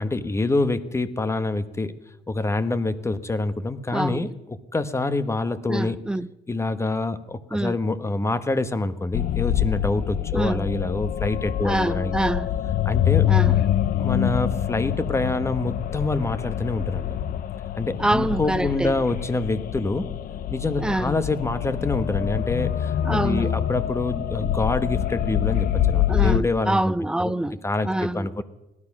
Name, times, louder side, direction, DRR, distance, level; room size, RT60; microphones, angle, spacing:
voice 1, 0.0-1.9 2.3-6.0 6.5-12.2 12.8-13.5 14.0-17.1 17.8-20.1 20.5-26.9 27.6-28.4, left 2 dB, 15° left, 1.0 m, -26 dB
voice 2, 3.9-4.2 5.7-6.3 7.5-7.8 10.3-10.7 11.6-12.5 13.2-13.6 18.0-19.0 20.8-21.1 23.0-23.6 26.1-28.4, right 1 dB, 5° right, 0.5 m, -26 dB
sound 1, 9.1-26.4, left 11 dB, 55° left, 0.7 m, -25 dB
18.0 x 12.0 x 5.9 m
cardioid pair, 110°, 17 cm